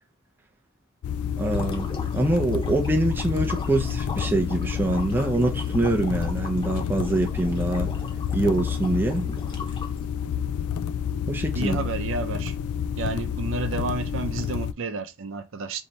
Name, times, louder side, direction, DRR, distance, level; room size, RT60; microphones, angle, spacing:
sound 1, 1.0-14.7, left 8 dB, 85° left, 0.3 m, -29 dB
sound 2, 1.4-10.3, left 3 dB, 25° left, 0.9 m, -39 dB
voice 1, 1.4-1.9 2.1-7.9 8.3-9.4 11.3-11.8, right 2 dB, 10° right, 0.4 m, -24 dB
voice 2, 11.5-12.6 13.0-15.8, right 4 dB, 60° right, 0.5 m, -31 dB
3.3 x 2.7 x 4.0 m
head